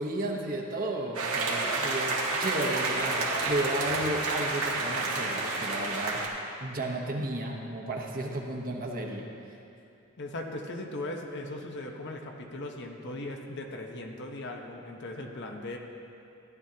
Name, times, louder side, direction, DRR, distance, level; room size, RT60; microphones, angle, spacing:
voice 1, 0.0-6.2 6.6-9.3, right 1 dB, 40° right, 0 dB, 1.0 m, -33 dB
sound 1, 1.1-6.3, right 3 dB, 80° right, 1.6 m, -30 dB
voice 2, 10.2-15.8, left 2 dB, 55° left, 2 dB, 0.9 m, -38 dB
14.5 x 10.5 x 2.8 m, 2.6 s
head